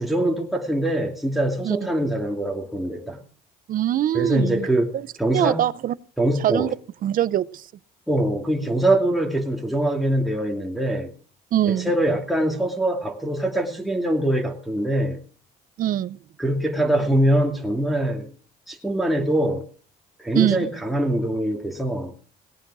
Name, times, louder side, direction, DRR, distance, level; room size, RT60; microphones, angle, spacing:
voice 1, 0.0-3.2 4.1-4.9 5.2-5.6 6.2-6.7 8.1-11.1 11.6-15.2 16.4-18.3 18.7-19.6 20.2-22.1, right 1 dB, ahead, 1 dB, 2.6 m, -23 dB
voice 2, 3.7-4.7 4.9-5.1 5.3-5.9 6.4-6.7 7.0-7.7 11.5-11.9 15.8-16.2 20.3-20.7, right 12 dB, 55° right, 19 dB, 0.7 m, -22 dB
18.5 x 8.9 x 6.2 m, 0.42 s
cardioid pair, 110°, 17 cm